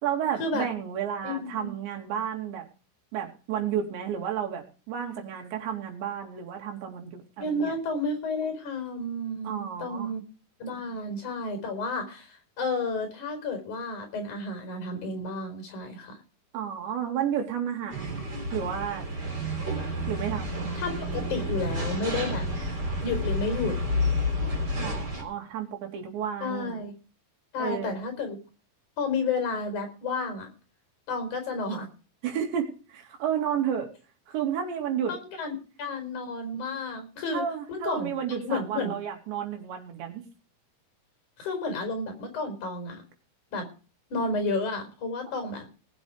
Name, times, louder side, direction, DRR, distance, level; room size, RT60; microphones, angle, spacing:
voice 1, 0.0-2.6 3.1-7.7 9.4-10.1 16.5-18.2 18.5-19.1 20.1-20.7 24.8-26.8 27.6-28.0 32.2-33.9 34.3-35.2 37.3-40.2, right 8 dB, 85° right, 3 dB, 4.9 m, -32 dB
voice 2, 1.2-1.7 7.4-10.2 10.6-16.2 20.8-22.5 23.0-23.8 26.4-26.9 27.5-28.4 29.0-30.5 31.1-31.9 35.1-37.4 37.7-38.9 41.4-43.0 43.5-43.7 44.1-45.7, left 3 dB, 45° left, 6 dB, 6.0 m, -31 dB
sound 1, 17.9-25.2, left 1 dB, 25° right, 3.9 m, -30 dB
19.5 x 8.2 x 4.9 m, 0.35 s
omnidirectional pair, 5.0 m